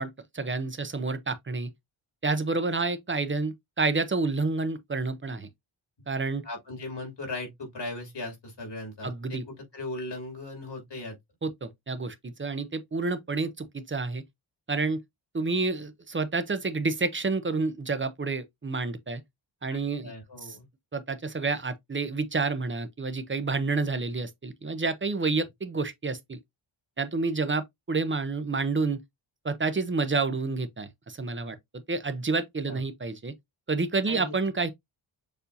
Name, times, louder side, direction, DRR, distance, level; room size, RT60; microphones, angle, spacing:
voice 1, 0.0-1.7 2.2-5.5 6.1-6.4 9.0-9.4 11.4-14.2 14.7-15.0 15.3-19.2 19.6-20.1 20.4-20.6 20.9-26.4 27.0-29.0 29.4-33.3 33.7-34.7, right 3 dB, 25° right, 0.6 m, -29 dB
voice 2, 6.4-11.1 19.7-20.7 32.6-32.8 34.1-34.3, left 2 dB, 60° left, 2.7 m, -38 dB
6.9 x 2.7 x 2.6 m
wide cardioid pair, 140°, 47 cm